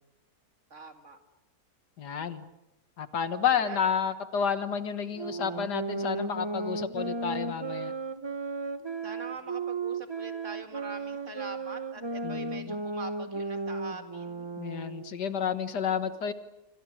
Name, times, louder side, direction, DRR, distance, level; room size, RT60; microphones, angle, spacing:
voice 1, 0.7-1.2 3.6-3.8 9.0-14.5, right 3 dB, 45° right, 6 dB, 2.4 m, -43 dB
voice 2, 2.0-2.5 3.0-7.9 12.2-12.7 14.6-16.3, left 7 dB, 85° left, 11 dB, 2.0 m, -30 dB
sound 1, 5.1-15.2, right 3 dB, 25° right, 0.6 m, -35 dB
26.0 x 26.0 x 6.6 m, 0.96 s
omnidirectional pair, 1.7 m